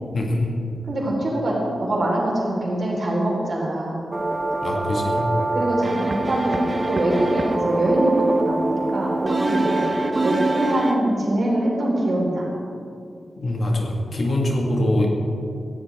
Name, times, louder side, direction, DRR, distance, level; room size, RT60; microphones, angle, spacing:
voice 1, 0.1-0.6 4.6-5.3 13.4-15.1, left 1 dB, 45° left, 0 dB, 1.8 m, -23 dB
voice 2, 0.9-4.0 5.5-9.9 10.2-12.5, right 1 dB, 45° right, -3 dB, 4.2 m, -23 dB
sound 1, 4.1-11.0, right 2 dB, 25° right, 1.1 m, -24 dB
18.0 x 15.5 x 3.6 m, 2.5 s
wide cardioid pair, 165°, 0 cm